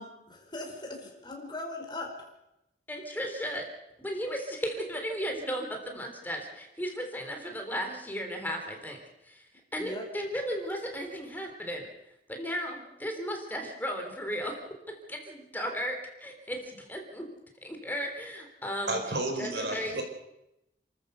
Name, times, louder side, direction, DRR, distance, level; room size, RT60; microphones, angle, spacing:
voice 1, 0.0-2.1 9.8-10.1, left 2 dB, 25° left, 1 dB, 4.8 m, -39 dB
voice 2, 2.9-3.7 4.0-9.0 9.2-9.4 9.7-11.9 12.3-14.6 14.9-17.3 17.6-19.0 19.4-20.0, equal, 10° left, 3 dB, 3.3 m, -35 dB
voice 3, 18.9-20.0, right 2 dB, 70° right, 5 dB, 4.5 m, -31 dB
29.5 x 13.5 x 6.9 m, 0.88 s
head